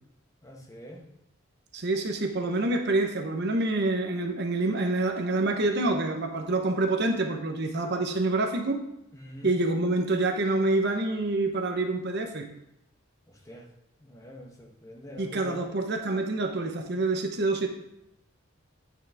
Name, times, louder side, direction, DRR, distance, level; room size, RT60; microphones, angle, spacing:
voice 1, 0.4-1.1 9.1-9.5 13.5-13.7 14.0-15.6, left 1 dB, 15° left, 1 dB, 1.1 m, -44 dB
voice 2, 1.7-8.8 9.4-12.5 15.2-17.7, right 2 dB, 55° right, 4 dB, 0.9 m, -27 dB
9.2 x 6.2 x 3.5 m, 0.84 s
head